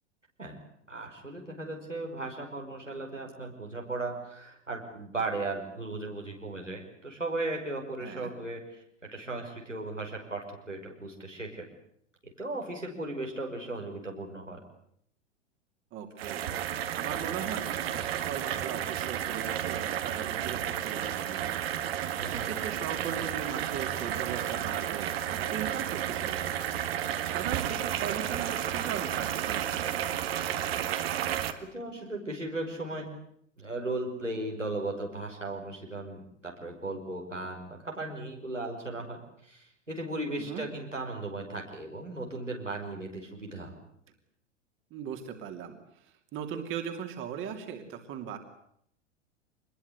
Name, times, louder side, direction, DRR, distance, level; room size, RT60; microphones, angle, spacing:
voice 1, 0.9-11.6 12.2-14.6 22.2-22.5 31.7-33.1 33.6-43.7, right 2 dB, 90° right, 0 dB, 5.6 m, -36 dB
voice 2, 15.9-16.5 16.9-26.6 26.9-29.9 40.4-40.6 44.9-45.8 46.3-48.4, right 8 dB, 35° right, 5 dB, 2.9 m, -39 dB
sound 1, 16.2-31.5, right 10 dB, 55° right, 2.1 m, -32 dB
25.5 x 21.0 x 8.1 m, 0.71 s
figure-of-eight pair, 95°, 36 cm